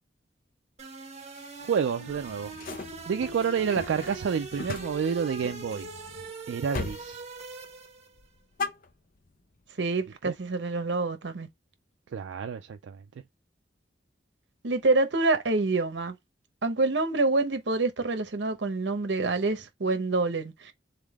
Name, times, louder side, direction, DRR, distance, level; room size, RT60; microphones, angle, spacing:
sound 1, 0.8-8.2, right 3 dB, 35° right, 1.2 m, -42 dB
voice 1, 1.6-2.5 3.1-5.9 6.5-7.2 10.3-10.4 12.1-13.0, right 6 dB, 90° right, 0.4 m, -29 dB
sound 2, 2.1-6.3 6.7-7.1 7.4-7.8 8.1-9.4, left 3 dB, 50° left, 0.7 m, -39 dB
voice 2, 9.8-11.5 14.6-16.1 16.6-20.7, right 3 dB, 70° right, 0.9 m, -27 dB
3.7 x 3.6 x 3.5 m
head